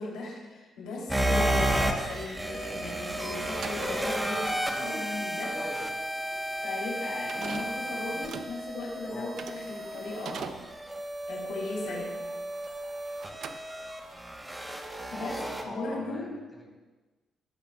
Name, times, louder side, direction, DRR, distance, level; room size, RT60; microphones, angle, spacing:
voice 1, 0.0-5.5 6.6-10.7 11.3-12.0 15.1-16.3, left 2 dB, 85° left, -3 dB, 3.2 m, -37 dB
sound 1, 1.1-15.6, right 1 dB, 10° right, 1.1 m, -32 dB
sound 2, 3.6-12.9 13.2-14.2, right 6 dB, 65° right, 0.6 m, -44 dB
voice 2, 4.4-5.1 5.5-5.9 9.1-9.3 11.9-12.0 15.1-16.7, left 1 dB, 15° left, -3 dB, 3.1 m, -43 dB
sound 3, 4.7-10.5, right 2 dB, 85° right, 1.6 m, -54 dB
16.0 x 8.7 x 2.4 m, 1.2 s
cardioid pair, 90°, 0 cm